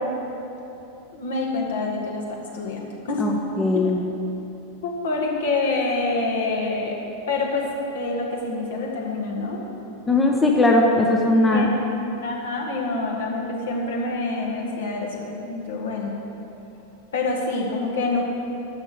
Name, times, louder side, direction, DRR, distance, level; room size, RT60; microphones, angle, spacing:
voice 1, 1.1-3.2 3.6-4.0 4.8-7.0 7.3-7.7 7.9-9.6 11.5-11.8 12.2-16.1 17.1-18.2, left 3 dB, 60° left, -1 dB, 2.0 m, -26 dB
voice 2, 3.2-4.0 10.1-11.7, left 2 dB, 15° left, 0 dB, 1.0 m, -19 dB
12.0 x 6.8 x 7.8 m, 2.9 s
figure-of-eight pair, 90°, 0 cm